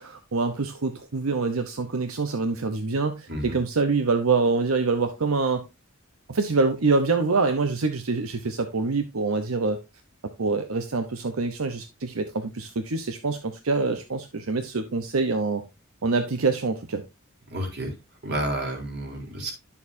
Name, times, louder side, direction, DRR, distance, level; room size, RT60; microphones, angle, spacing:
voice 1, 0.0-5.6 6.3-9.8 10.4-15.6 16.0-17.0, right 4 dB, 85° right, 0.8 m, -25 dB
voice 2, 17.5-17.9 18.2-19.5, right 1 dB, 55° right, 3.5 m, -30 dB
10.5 x 7.1 x 2.6 m
head